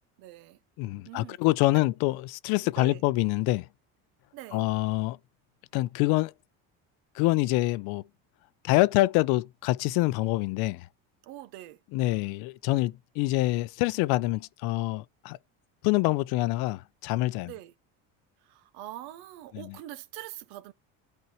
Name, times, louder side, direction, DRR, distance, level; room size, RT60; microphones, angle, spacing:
voice 1, 0.2-0.6 1.0-1.4 1.7-1.8 2.8-3.0 4.3-4.6 11.2-11.8 17.4-17.7 18.4-20.7, right 14 dB, 80° right, 0.8 m, -43 dB
voice 2, 0.8-3.7 4.5-5.2 5.7-6.3 7.2-8.0 8.6-10.9 11.9-15.4 15.8-17.5 19.5-19.7, left 19 dB, 75° left, 0.6 m, -26 dB
13.5 x 4.6 x 2.9 m
supercardioid pair, 100°, 37 cm